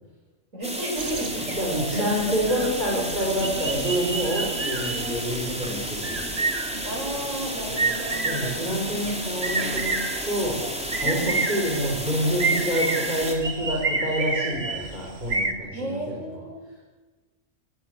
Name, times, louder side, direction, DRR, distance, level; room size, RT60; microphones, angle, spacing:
voice 1, 0.5-1.6 1.9-2.4 6.8-8.7 11.0-11.3 15.7-16.7, right 1 dB, 80° right, -1 dB, 7.2 m, -33 dB
sound 1, 0.6-13.4, equal, 5° right, 3.0 m, -32 dB
sound 2, 1.0-15.5, right 3 dB, 50° right, 2.2 m, -30 dB
voice 2, 1.6-6.3 8.2-9.9 10.2-10.6 10.9-16.4, equal, 35° right, -4 dB, 5.7 m, -27 dB
24.0 x 19.5 x 8.4 m, 1.2 s
omnidirectional pair, 1.3 m